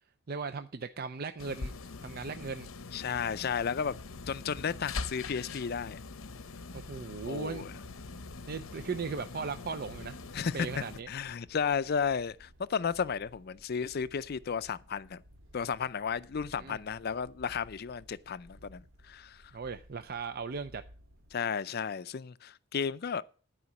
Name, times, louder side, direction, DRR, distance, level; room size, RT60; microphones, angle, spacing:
voice 1, 0.3-1.7 2.0-2.7 6.7-7.8 8.5-10.2 10.5-11.1 16.5-16.8 19.5-20.8, right 5 dB, 50° right, 0.5 m, -37 dB
sound 1, 1.4-11.0, left 3 dB, 85° left, 0.8 m, -43 dB
voice 2, 2.9-3.9 4.3-6.0 7.2-7.7 10.3-10.7 11.1-15.2 15.5-19.5 21.3-23.2, left 6 dB, 50° left, 0.4 m, -33 dB
sound 2, 8.3-21.4, equal, 65° right, 1.2 m, -58 dB
12.5 x 5.0 x 7.1 m
head